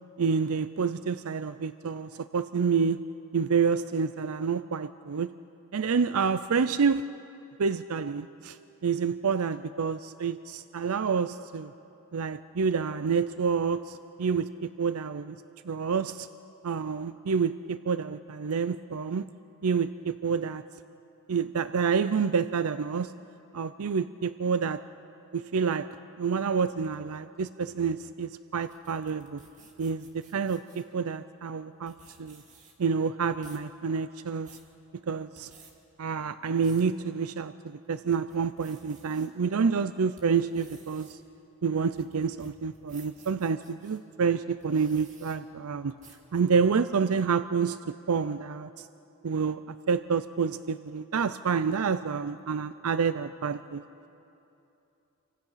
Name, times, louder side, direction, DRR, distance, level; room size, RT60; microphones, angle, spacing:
voice 1, 0.2-3.0 3.3-5.3 5.7-7.1 7.6-8.6 8.8-11.7 12.1-15.4 15.6-16.3 16.6-19.3 19.6-20.6 21.3-23.1 23.5-24.8 25.3-25.9 26.2-29.4 29.8-32.4 32.8-34.5 35.1-35.5 36.0-41.2 41.6-46.0 46.3-48.9 49.2-49.6 49.9-53.8, right 5 dB, 80° right, 13 dB, 0.5 m, -28 dB
sound 1, 28.5-30.9 31.6-31.7 31.9-32.9 33.2-33.7 34.2-34.7 35.2-35.7 36.3-36.9 37.4-37.5 38.0-39.3 39.8-44.0 44.5-45.4 46.0-46.3, right 4 dB, 35° right, 2.4 m, -55 dB
29.5 x 25.0 x 5.7 m, 2.9 s
head